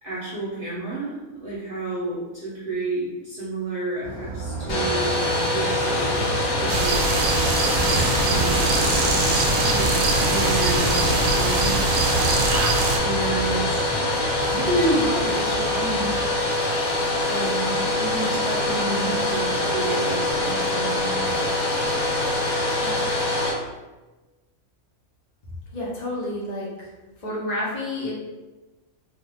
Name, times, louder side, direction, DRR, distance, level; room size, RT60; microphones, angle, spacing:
voice 1, 0.0-7.2 8.2-9.0 9.7-11.8 13.0-14.1 14.5-16.2 17.2-21.5 22.8-23.0, right 2 dB, 50° right, -8 dB, 0.8 m, -30 dB
Motorcycle, 4.0-16.2, right 2 dB, ahead, 1.0 m, -30 dB
Domestic sounds home sounds, 4.7-23.5, left 2 dB, 90° left, 1.3 m, -24 dB
sound 1, 6.7-13.0, right 3 dB, 75° right, 0.9 m, -23 dB
voice 2, 25.7-26.9 27.2-28.1, left 1 dB, 40° left, -6 dB, 0.7 m, -29 dB
2.6 x 2.3 x 3.4 m, 1.1 s
omnidirectional pair, 1.4 m